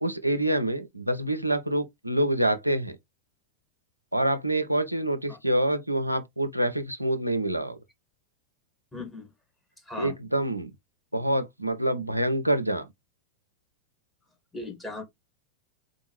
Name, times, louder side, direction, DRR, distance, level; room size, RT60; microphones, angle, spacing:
voice 1, 0.0-3.0 4.1-7.8 10.0-10.7 11.1-12.9, right 1 dB, 85° right, 0.5 m, -26 dB
voice 2, 8.9-9.3 9.8-10.1 14.5-15.0, left 2 dB, 5° left, 1.4 m, -37 dB
3.7 x 2.6 x 3.0 m
figure-of-eight pair, 90°, 0 cm